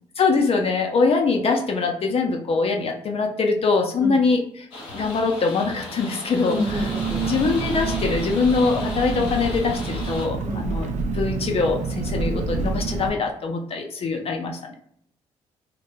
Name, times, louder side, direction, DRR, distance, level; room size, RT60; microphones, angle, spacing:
voice 1, 0.2-4.7 4.9-6.9 7.2-10.9 11.1-14.8, left 4 dB, 45° left, 3 dB, 0.4 m, -23 dB
sound 1, 4.7-10.3, left 2 dB, 85° left, 0.6 m, -36 dB
voice 2, 6.4-7.3 10.4-10.7, left 1 dB, 25° right, 1 dB, 0.9 m, -28 dB
Engine, 6.7-13.1, right 4 dB, 60° right, 0.4 m, -28 dB
2.1 x 2.1 x 3.0 m, 0.66 s
hypercardioid pair, 45°, 14 cm